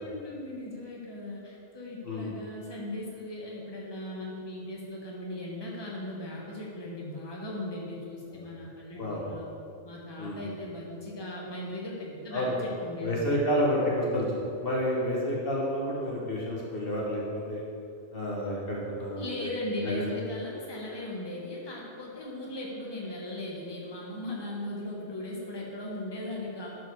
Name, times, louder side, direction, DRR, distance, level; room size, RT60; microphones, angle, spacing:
voice 1, 0.0-9.4 9.8-13.4 19.2-26.7, left 1 dB, 25° left, -4 dB, 1.4 m, -38 dB
voice 2, 13.0-17.2 17.5-17.6 18.1-19.5 19.8-20.1, equal, 60° left, -4 dB, 1.6 m, -30 dB
11.5 x 4.9 x 4.7 m, 2.5 s
omnidirectional pair, 1.1 m